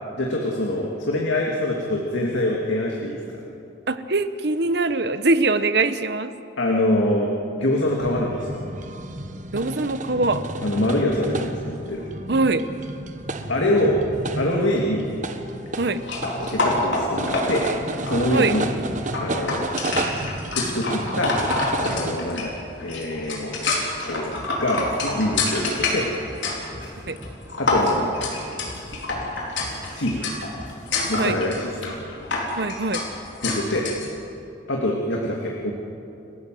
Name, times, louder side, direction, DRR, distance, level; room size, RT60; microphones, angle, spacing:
voice 1, 0.1-3.4 6.6-7.3 7.6-8.6 10.6-12.1 13.5-14.0 14.4-15.1 16.5-17.7 18.1-18.7 19.2-19.7 20.5-21.3 21.8-22.5 22.8-24.3 24.6-26.1 27.6-28.2 30.0-30.2 31.0-32.2 33.4-33.9 34.7-35.7, left 1 dB, 90° left, -1 dB, 2.5 m, -25 dB
voice 2, 3.9-6.3 9.5-10.4 12.3-12.7 15.8-16.0 18.3-18.6 27.1-27.2 31.2-31.4 32.6-33.0, right 3 dB, 60° right, 11 dB, 1.0 m, -22 dB
sound 1, 8.0-22.2, right 2 dB, 40° right, 1.2 m, -31 dB
sound 2, 16.0-34.1, left 2 dB, 75° left, 4.4 m, -28 dB
sound 3, 24.1-30.9, equal, 10° right, 8.0 m, -42 dB
29.5 x 15.5 x 7.8 m, 2.7 s
head